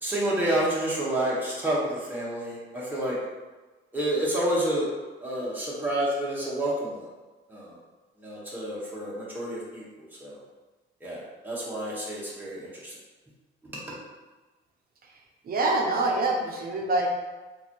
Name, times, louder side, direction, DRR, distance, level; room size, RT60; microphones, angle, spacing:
voice 1, 0.0-3.2 3.9-4.9 5.2-7.1 7.5-7.8 8.2-10.4 11.0-13.0 13.6-13.8, right 1 dB, 10° right, -7 dB, 1.4 m, -29 dB
voice 2, 15.4-17.1, right 2 dB, 50° right, 1 dB, 0.8 m, -25 dB
3.8 x 2.7 x 3.0 m, 1.2 s
cardioid pair, 90°, 20 cm